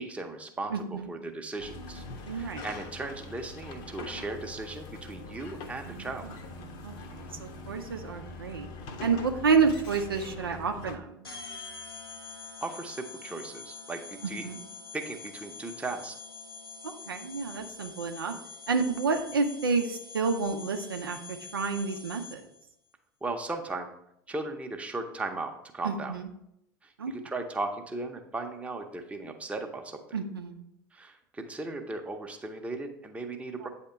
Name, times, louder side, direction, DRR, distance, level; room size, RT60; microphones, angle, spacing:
voice 1, 0.0-6.3 12.6-14.0 14.3-14.4 14.9-16.1 23.2-23.9 24.3-26.1 26.8-30.0 30.9-33.7, right 2 dB, 10° right, 3 dB, 0.7 m, -37 dB
voice 2, 0.7-1.1 2.3-2.7 5.8-6.3 6.8-8.7 9.0-11.3 14.4-14.6 16.8-18.3 18.7-22.5 25.8-26.3 27.0-27.1 30.1-30.6 33.6-33.7, right 5 dB, 80° right, 4 dB, 0.5 m, -30 dB
sound 1, 1.6-10.9, left 2 dB, 50° left, 0.8 m, -43 dB
sound 2, 11.2-22.6, left 4 dB, 85° left, 0.8 m, -45 dB
8.4 x 2.9 x 4.4 m, 0.78 s
figure-of-eight pair, 75°, 12 cm